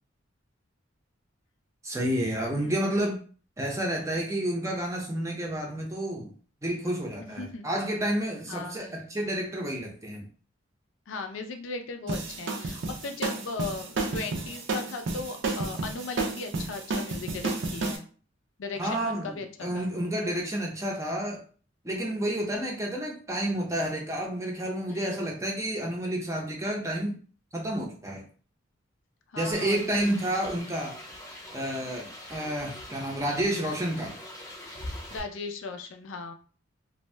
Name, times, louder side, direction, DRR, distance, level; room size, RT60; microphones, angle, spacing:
voice 1, 1.8-3.2 3.6-6.3 6.6-10.3 18.8-21.4 21.8-27.1 27.5-28.3 29.4-31.0 31.5-34.1, right 1 dB, 15° right, 0.6 m, -30 dB
voice 2, 7.1-7.6 8.5-8.8 11.1-18.1 18.6-19.9 24.9-25.3 29.3-30.0 35.1-36.3, left 4 dB, 70° left, 0.4 m, -37 dB
sound 1, 12.1-18.0, right 3 dB, 65° right, 0.6 m, -31 dB
sound 2, 29.5-35.2, left 1 dB, 15° left, 0.8 m, -43 dB
2.6 x 2.1 x 3.2 m
head